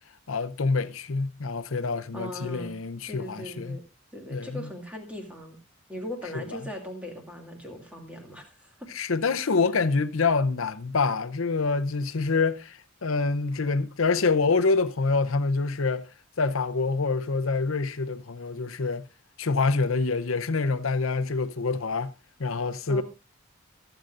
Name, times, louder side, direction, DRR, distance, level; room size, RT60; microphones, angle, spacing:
voice 1, 0.3-3.8 4.3-4.7 8.9-16.1 16.4-19.1 19.4-22.1 22.4-23.0, left 4 dB, 75° left, 0.8 m, -26 dB
voice 2, 2.1-2.8 3.1-3.8 4.1-5.6 5.9-8.9 22.9-23.0, left 1 dB, 5° right, 2.4 m, -39 dB
23.0 x 8.1 x 2.5 m
head